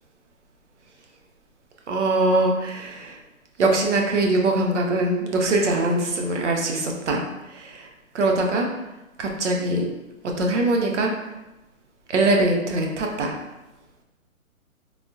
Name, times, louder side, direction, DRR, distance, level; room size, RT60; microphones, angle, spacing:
voice 1, 1.9-3.2 3.6-8.7 9.2-9.8 10.2-11.1 12.1-13.4, right 2 dB, 55° right, 1 dB, 0.6 m, -22 dB
3.4 x 2.3 x 2.6 m, 0.99 s
hypercardioid pair, 170°, 43 cm